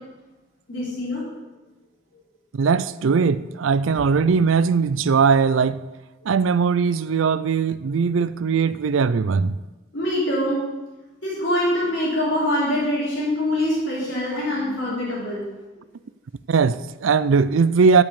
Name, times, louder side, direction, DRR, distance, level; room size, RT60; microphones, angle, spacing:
voice 1, 0.7-1.2 9.9-10.6 11.2-15.4, left 1 dB, 70° left, 3.4 m, -24 dB
voice 2, 2.5-5.8 6.3-9.6 16.5-18.0, right 5 dB, 85° right, 0.4 m, -19 dB
12.0 x 5.3 x 6.9 m
head